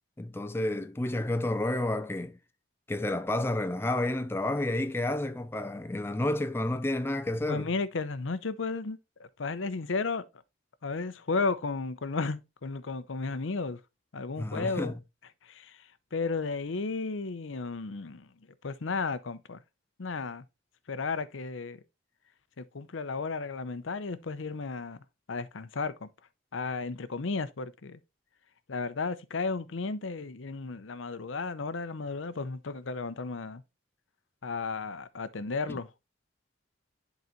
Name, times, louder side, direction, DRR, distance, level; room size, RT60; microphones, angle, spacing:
voice 1, 0.2-2.4 2.9-7.7 14.4-14.9 35.7-35.8, left 1 dB, 10° left, 0.4 m, -30 dB
voice 2, 7.5-10.3 10.8-13.8 14.1-14.9 15.4-18.3 18.6-19.6 20.0-20.4 20.9-21.8 22.6-26.1 26.5-28.0 28.7-33.6 34.4-35.9, left 4 dB, 85° left, 0.7 m, -34 dB
10.5 x 4.0 x 3.0 m
head